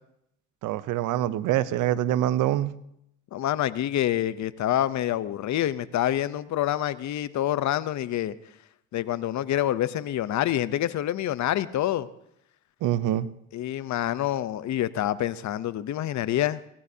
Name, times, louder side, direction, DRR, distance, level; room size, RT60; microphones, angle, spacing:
voice 1, 0.6-2.7 12.8-13.3, right 13 dB, 90° right, 16 dB, 0.7 m, -25 dB
voice 2, 3.3-8.3 8.9-12.1 13.5-16.6, left 12 dB, 70° left, 15 dB, 0.7 m, -27 dB
22.5 x 16.5 x 2.8 m, 0.77 s
cardioid pair, 90°, 30 cm